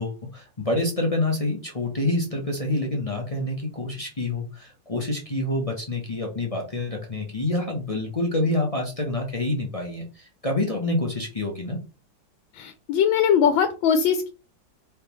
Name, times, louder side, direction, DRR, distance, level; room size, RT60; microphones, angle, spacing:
voice 1, 0.0-11.8, left 2 dB, 45° left, 0 dB, 0.4 m, -27 dB
voice 2, 12.5-14.3, left 7 dB, 90° left, 7 dB, 1.4 m, -21 dB
4.5 x 3.4 x 3.0 m, 0.32 s
omnidirectional pair, 2.1 m